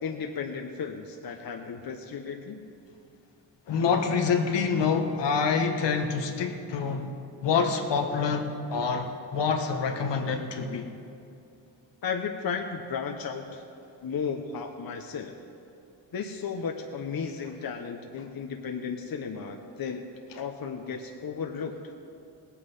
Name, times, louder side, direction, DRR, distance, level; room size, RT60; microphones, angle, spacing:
voice 1, 0.0-2.6 12.0-13.6 14.0-15.3 16.1-20.0 20.3-21.9, left 6 dB, 50° left, 4 dB, 1.1 m, -34 dB
voice 2, 3.7-7.1 7.4-10.9, left 5 dB, 70° left, 5 dB, 1.3 m, -26 dB
18.0 x 8.6 x 5.5 m, 2.7 s
supercardioid pair, 55°, 45 cm